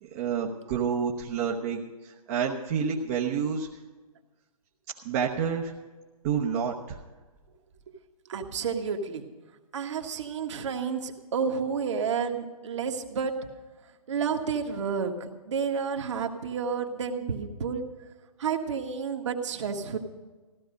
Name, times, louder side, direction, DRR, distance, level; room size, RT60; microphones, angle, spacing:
voice 1, 0.0-3.7 5.0-5.7 6.2-7.0, right 7 dB, 25° right, -2 dB, 1.0 m, -29 dB
voice 2, 8.2-9.2 9.7-13.3 14.1-17.8 18.4-20.0, right 6 dB, 50° right, 3 dB, 1.7 m, -30 dB
15.5 x 12.5 x 5.2 m, 1.3 s
hypercardioid pair, 155°, 19 cm